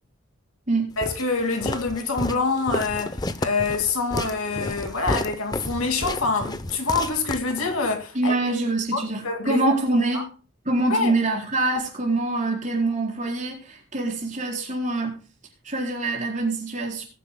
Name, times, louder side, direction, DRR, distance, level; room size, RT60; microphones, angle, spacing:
voice 1, 1.0-8.3 8.9-9.6 10.9-11.1, left 3 dB, 80° left, 2.3 m, -26 dB
Walk footsteps, 1.0-7.9, left 2 dB, 20° left, 0.6 m, -31 dB
voice 2, 8.1-10.3 10.6-15.2 15.6-17.0, right 2 dB, 35° right, 4.5 m, -25 dB
20.5 x 10.0 x 2.2 m
head